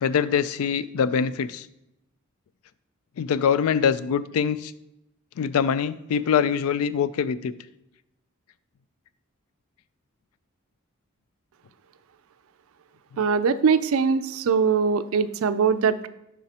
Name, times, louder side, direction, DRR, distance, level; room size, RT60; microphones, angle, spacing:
voice 1, 0.0-1.7 3.2-4.7 5.4-7.5 13.1-13.2, left 7 dB, 80° left, 16 dB, 0.3 m, -24 dB
voice 2, 13.2-16.1, right 6 dB, 70° right, 13 dB, 0.4 m, -22 dB
7.2 x 5.6 x 2.8 m, 0.85 s
head